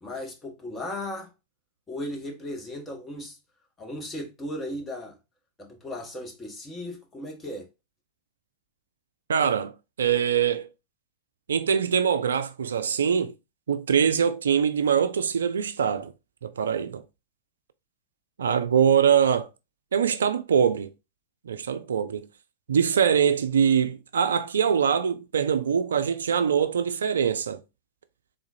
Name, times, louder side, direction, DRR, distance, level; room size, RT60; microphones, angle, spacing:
voice 1, 0.0-1.3 1.9-3.4 3.8-5.2 5.6-7.7, left 1 dB, 15° left, 1.2 m, -36 dB
voice 2, 9.3-9.7 10.0-10.7 11.5-13.3 13.7-16.1 16.4-17.0 18.4-19.5 19.9-20.9 21.5-22.3 22.7-27.6, right 7 dB, 65° right, 0.3 m, -23 dB
3.7 x 3.7 x 2.6 m
figure-of-eight pair, 90°, 0 cm